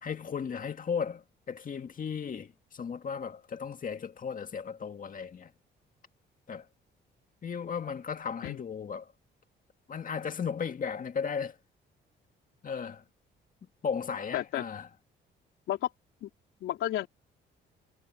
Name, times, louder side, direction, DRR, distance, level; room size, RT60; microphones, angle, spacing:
voice 1, 0.0-5.5 6.5-6.7 7.4-9.1 9.9-11.6 12.6-13.0 13.8-14.9, left 6 dB, 45° left, 2.0 m, -35 dB
voice 2, 14.3-14.6 15.7-15.9 16.2-16.3 16.6-17.1, left 13 dB, 85° left, 3.8 m, -31 dB
cardioid pair, 90°, 20 cm